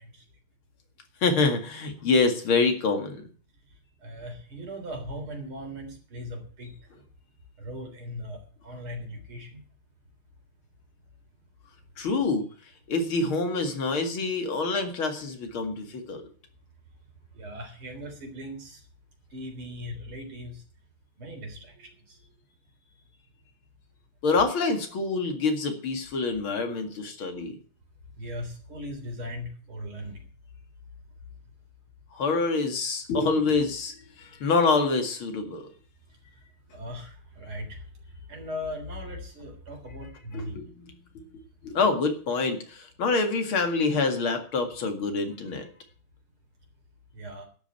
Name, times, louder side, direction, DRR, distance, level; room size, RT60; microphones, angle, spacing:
voice 1, 1.2-3.2 12.0-12.4 12.9-16.2 24.2-27.6 32.1-35.7 40.3-45.7, left 3 dB, 75° left, 6 dB, 2.9 m, -26 dB
voice 2, 4.0-6.7 7.6-9.6 17.3-18.8 19.3-20.6 21.2-22.2 28.2-30.2 36.7-37.8 38.3-40.6 47.1-47.5, left 1 dB, 85° right, 3 dB, 4.5 m, -38 dB
11.5 x 8.5 x 8.9 m, 0.44 s
omnidirectional pair, 2.3 m